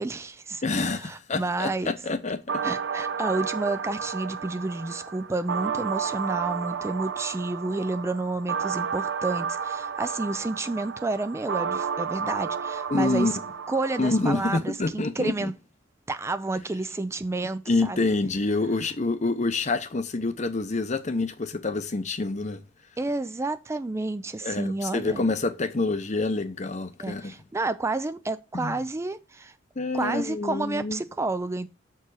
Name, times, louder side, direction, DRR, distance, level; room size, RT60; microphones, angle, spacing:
voice 1, 0.0-1.9 2.6-13.4 13.7-15.5 16.1-18.0 23.0-25.3 27.0-29.5 29.9-31.7, right 2 dB, 15° right, 0.3 m, -30 dB
voice 2, 0.6-2.4 12.9-13.3 14.0-15.5 17.7-22.6 24.4-27.3 28.5-28.8 29.8-31.0, left 3 dB, 40° left, 0.7 m, -27 dB
sound 1, 2.5-14.5, right 6 dB, 65° right, 0.7 m, -32 dB
7.0 x 4.6 x 4.8 m
head